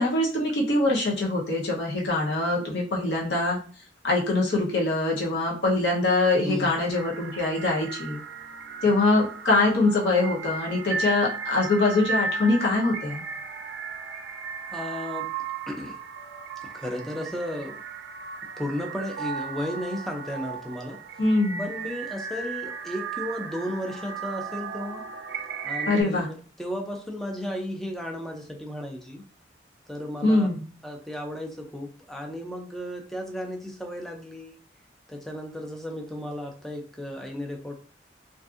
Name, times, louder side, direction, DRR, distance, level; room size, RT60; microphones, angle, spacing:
voice 1, 0.0-3.6 4.0-8.2 8.8-13.2 21.2-21.6 25.9-26.3 30.2-30.6, left 2 dB, 65° left, -3 dB, 0.8 m, -23 dB
voice 2, 6.4-6.8 14.7-15.3 15.7-16.0 16.6-17.8 18.6-21.0 21.6-25.1 25.6-26.3 26.6-29.2 29.9-30.5 30.8-34.6 35.1-37.7, equal, ahead, 2 dB, 0.4 m, -34 dB
sound 1, 6.9-26.0, right 5 dB, 75° right, 0.4 m, -35 dB
2.5 x 2.5 x 2.4 m, 0.40 s
head